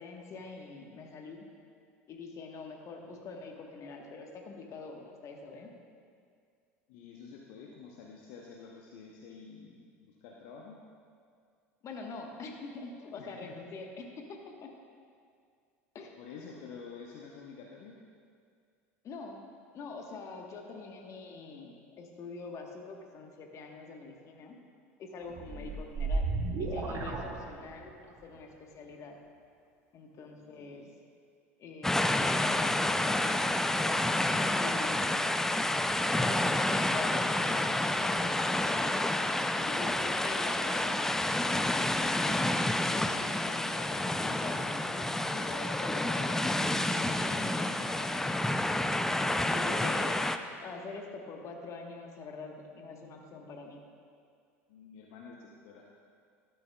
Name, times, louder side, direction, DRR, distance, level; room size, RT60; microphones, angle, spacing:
voice 1, 0.0-1.5 2.1-5.7 11.8-14.7 15.9-16.2 19.0-19.5 19.7-24.6 25.0-26.3 26.6-29.2 29.9-30.9 31.6-33.5 34.6-35.4 36.1-38.9 39.2-42.5 42.9-48.3 49.1-50.2 50.6-53.8, left 4 dB, 45° left, 2 dB, 1.2 m, -44 dB
voice 2, 6.9-10.8 13.2-13.6 16.2-17.9 25.5-25.8 27.2-27.4 30.3-30.9 54.7-55.9, left 5 dB, 65° left, -1 dB, 0.7 m, -49 dB
sound 1, 25.3-28.0, right 3 dB, 45° right, 1.2 m, -33 dB
sound 2, 31.8-50.4, left 1 dB, 5° left, 0.3 m, -29 dB
12.0 x 8.9 x 2.3 m, 2.2 s
hypercardioid pair, 75°, 8 cm